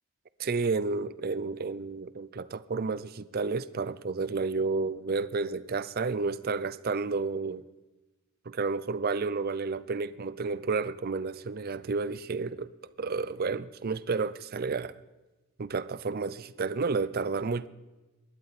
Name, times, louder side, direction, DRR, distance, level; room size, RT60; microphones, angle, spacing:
voice 1, 0.4-7.6 8.5-12.7 13.0-14.9 15.6-17.7, right 4 dB, 45° right, 17 dB, 0.5 m, -31 dB
19.0 x 13.0 x 4.1 m, 1.1 s
head